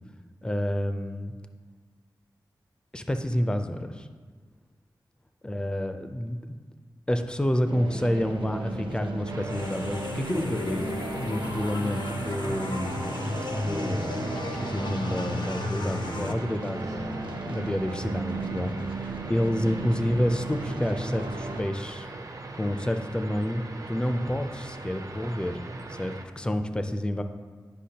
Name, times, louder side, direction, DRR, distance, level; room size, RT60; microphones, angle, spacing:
voice 1, 0.4-1.3 2.9-4.1 5.4-6.4 7.1-13.1 13.5-22.1 22.5-25.6 25.9-27.2, left 1 dB, 10° left, 7 dB, 0.4 m, -29 dB
sound 1, 7.7-21.6, right 2 dB, 80° right, 0.8 m, -36 dB
sound 2, 9.3-26.3, right 2 dB, 40° right, 0.5 m, -40 dB
sound 3, 9.5-16.3, left 3 dB, 65° left, 0.6 m, -34 dB
10.0 x 5.7 x 2.8 m, 1.5 s
wide cardioid pair, 115°, 8 cm